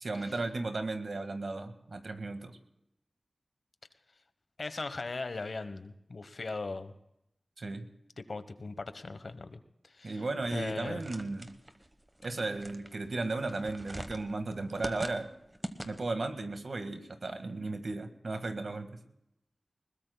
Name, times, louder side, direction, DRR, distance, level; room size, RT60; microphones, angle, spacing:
voice 1, 0.0-2.6 7.6-7.9 10.0-11.6 12.2-15.3 15.8-19.0, right 3 dB, 75° right, 7 dB, 1.7 m, -35 dB
voice 2, 4.6-6.9 8.2-10.2 10.5-11.0, left 3 dB, 70° left, 11 dB, 1.1 m, -39 dB
sound 1, 10.4-16.3, right 1 dB, 20° right, 1.2 m, -44 dB
21.0 x 20.0 x 2.3 m, 0.82 s
wide cardioid pair, 60°, 0 cm